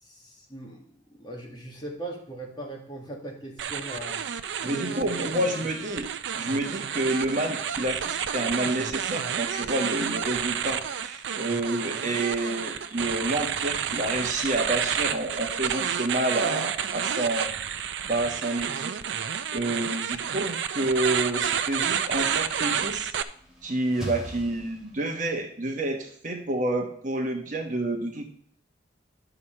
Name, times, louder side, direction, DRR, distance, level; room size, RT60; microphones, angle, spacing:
voice 1, 0.0-5.2 5.4-5.7, right 2 dB, 25° left, -1 dB, 1.8 m, -39 dB
sound 1, 3.6-23.2, right 8 dB, 70° right, 0.5 m, -30 dB
voice 2, 4.6-6.1 6.4-17.5 18.0-18.9 19.5-23.1 23.6-28.2, right 2 dB, 40° right, 3 dB, 1.2 m, -29 dB
sound 2, 23.2-25.4, left 1 dB, ahead, 1.7 m, -41 dB
11.0 x 6.1 x 4.4 m, 0.62 s
head